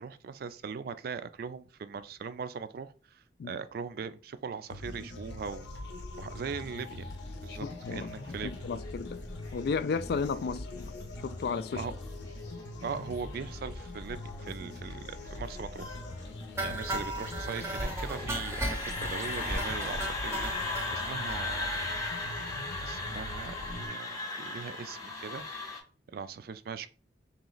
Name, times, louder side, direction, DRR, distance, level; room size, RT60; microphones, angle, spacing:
voice 1, 0.0-5.7 6.2-7.1 7.4-7.7 7.9-8.6 11.7-11.9 12.8-16.0 16.6-22.0 22.8-25.5 26.1-26.9, right 6 dB, 60° right, 0.3 m, -40 dB
sound 1, 4.7-23.9, left 2 dB, 80° left, 0.7 m, -42 dB
sound 2, 6.9-25.8, left 2 dB, 20° left, 0.8 m, -39 dB
voice 2, 7.5-8.1 8.4-9.2 9.5-11.8 16.6-16.8, left 5 dB, 60° left, 0.3 m, -34 dB
sound 3, 16.6-20.9 21.3-21.4 21.7-21.8 22.0-22.2 22.5-22.6, right 1 dB, 15° right, 0.6 m, -36 dB
3.3 x 2.9 x 3.9 m
head